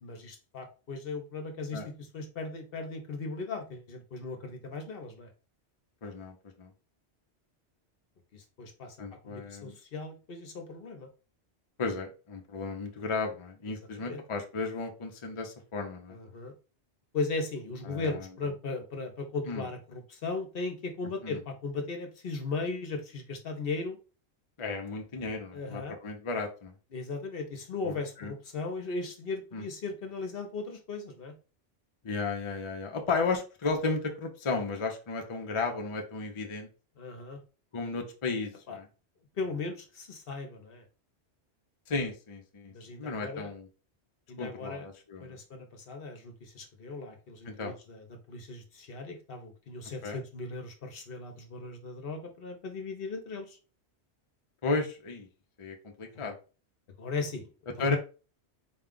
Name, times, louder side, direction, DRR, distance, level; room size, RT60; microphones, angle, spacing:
voice 1, 0.0-5.3 8.3-9.0 9.2-11.1 14.0-14.2 16.1-16.5 17.1-24.0 25.5-26.0 26.9-31.3 37.0-37.4 38.7-38.8 39.4-40.8 42.7-43.5 44.3-44.9 45.2-53.6 56.1-56.3 57.0-57.5 57.8-58.0, left 3 dB, 60° left, 5 dB, 0.9 m, -37 dB
voice 2, 6.0-6.7 9.0-9.7 11.8-16.2 17.9-18.3 19.5-19.7 21.2-21.4 24.6-26.7 27.8-28.3 29.5-29.6 32.0-36.7 37.7-38.9 41.9-43.7 44.4-45.4 47.5-47.7 50.0-50.2 54.6-55.3 55.6-56.4 57.8-58.0, left 3 dB, 35° left, 2 dB, 0.6 m, -34 dB
4.1 x 2.3 x 3.7 m, 0.34 s
omnidirectional pair, 1.1 m